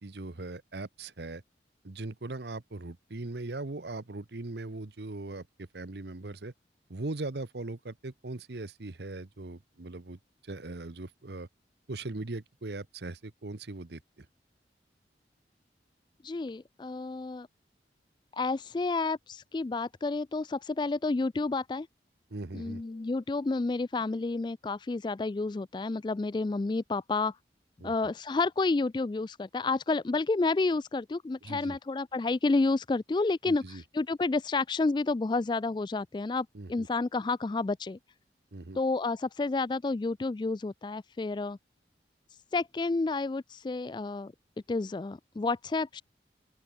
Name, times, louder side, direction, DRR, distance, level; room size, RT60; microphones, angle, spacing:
voice 1, 0.0-1.4 1.8-6.5 6.9-11.5 11.9-14.3 22.3-22.8 27.8-27.9 31.4-31.8 33.4-33.8 36.5-36.9 38.5-38.8, right 2 dB, 75° right, 1.0 m, -40 dB
voice 2, 16.2-17.5 18.3-21.9 22.5-27.3 27.8-38.0 38.8-41.6 42.5-44.3 44.7-46.0, left 3 dB, 25° left, 0.3 m, -30 dB
open air
head